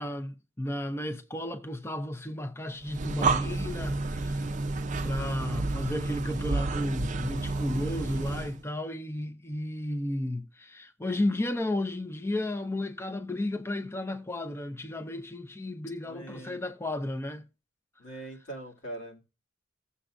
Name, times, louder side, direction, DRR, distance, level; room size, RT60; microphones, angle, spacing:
voice 1, 0.0-4.5 5.0-17.4, left 1 dB, 15° left, 0.5 m, -33 dB
Breathing, 2.8-8.6, right 3 dB, 40° right, 0.5 m, -30 dB
voice 2, 16.0-16.6 18.0-19.2, right 1 dB, 85° left, 2.2 m, -42 dB
16.5 x 6.9 x 2.5 m
head